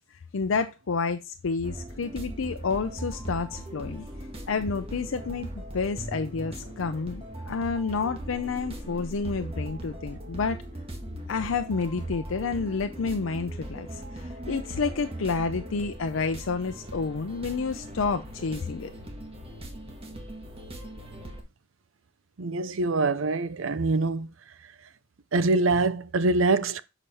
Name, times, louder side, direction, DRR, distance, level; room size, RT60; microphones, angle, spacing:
voice 1, 0.3-4.0 4.5-10.6 11.3-18.9, left 4 dB, 85° left, 0.5 m, -29 dB
sound 1, 1.6-21.4, right 1 dB, 30° right, 1.5 m, -39 dB
voice 2, 22.4-24.3 25.3-26.8, right 3 dB, 80° right, 0.6 m, -24 dB
7.1 x 5.0 x 4.2 m
head